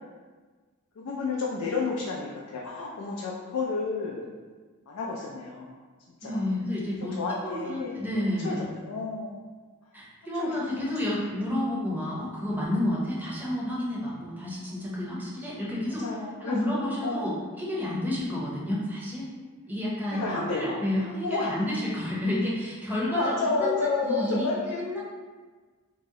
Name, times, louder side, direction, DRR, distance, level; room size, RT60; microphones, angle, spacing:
voice 1, 1.0-4.3 4.9-5.8 6.2-6.5 7.1-7.9 8.4-9.3 10.2-11.1 16.0-17.4 20.1-20.8 21.2-21.6 23.1-24.8, left 3 dB, 80° left, -3 dB, 0.4 m, -31 dB
voice 2, 6.2-8.7 9.9-16.1 16.4-19.3 19.7-25.0, left 1 dB, 10° right, -6 dB, 0.6 m, -30 dB
2.7 x 2.0 x 3.6 m, 1.4 s
head